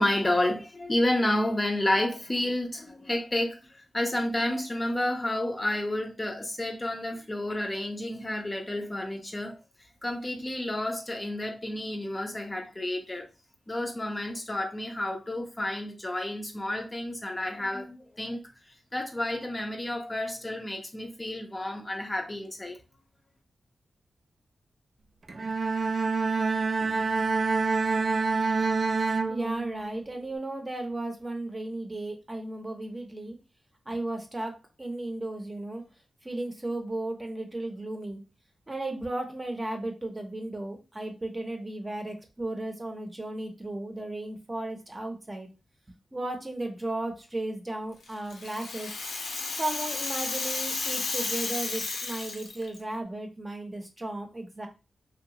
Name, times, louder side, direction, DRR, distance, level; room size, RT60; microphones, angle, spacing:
voice 1, 0.0-9.6 10.0-13.3 13.7-18.4 18.9-22.8, left 1 dB, 25° left, 0.5 m, -30 dB
Bowed string instrument, 25.3-30.0, right 4 dB, 50° right, 0.3 m, -27 dB
voice 2, 29.3-33.4 33.9-35.8 36.2-38.2 38.7-45.5 46.1-48.9 49.6-54.7, right 2 dB, 25° right, 0.7 m, -35 dB
Rattle (instrument), 48.0-52.8, left 3 dB, 90° left, 0.6 m, -33 dB
2.8 x 2.2 x 2.8 m
cardioid pair, 70°, 0 cm